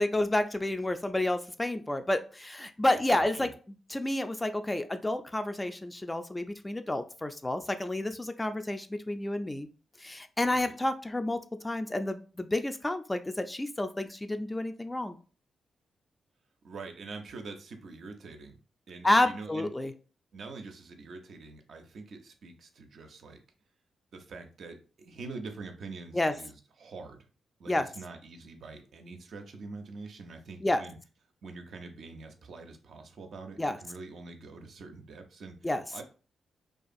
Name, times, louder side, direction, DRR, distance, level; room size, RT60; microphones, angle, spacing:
voice 1, 0.0-3.5 3.9-9.7 10.0-11.4 11.6-15.2 19.0-19.9 26.1-26.3 27.7-27.9 30.6-30.8 33.6-33.8 35.6-35.8, left 1 dB, 20° left, 9 dB, 0.3 m, -30 dB
voice 2, 3.1-3.5 10.4-10.7 16.6-18.6 18.9-19.7 20.3-23.4 24.1-27.2 27.6-31.0 31.4-36.0, right 3 dB, 70° right, 4 dB, 0.4 m, -45 dB
2.4 x 2.3 x 2.5 m, 0.37 s
hypercardioid pair, 40°, 0 cm